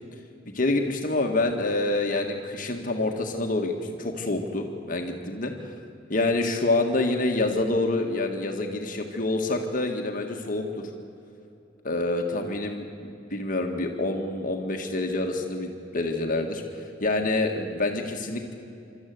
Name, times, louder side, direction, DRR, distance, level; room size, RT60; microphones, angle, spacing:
voice 1, 0.5-5.5 6.1-10.9 11.8-18.5, left 2 dB, 45° left, 3 dB, 1.7 m, -27 dB
26.0 x 13.0 x 9.4 m, 2.7 s
head